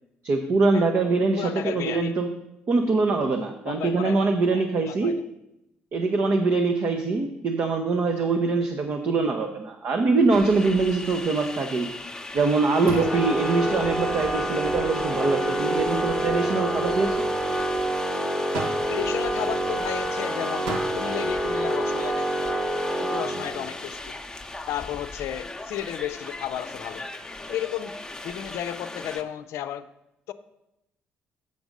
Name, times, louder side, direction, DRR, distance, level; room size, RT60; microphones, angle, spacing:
voice 1, 0.2-2.3 2.7-5.1 5.9-11.9 12.3-17.3, right 3 dB, 55° right, 3 dB, 0.8 m, -23 dB
voice 2, 1.4-2.1 3.7-5.2 12.8-13.2 18.9-22.6 23.0-24.2 24.7-27.1 27.5-28.0 28.2-29.9 30.3-30.4, left 11 dB, 70° left, 11 dB, 0.5 m, -33 dB
sound 1, 10.3-29.2, left 2 dB, 15° left, 0.8 m, -38 dB
sound 2, 10.8-27.7, right 2 dB, 75° right, 1.3 m, -43 dB
Organ, 13.0-23.9, right 1 dB, 5° right, 1.0 m, -27 dB
7.0 x 6.5 x 5.2 m, 0.87 s
hypercardioid pair, 50°, 5 cm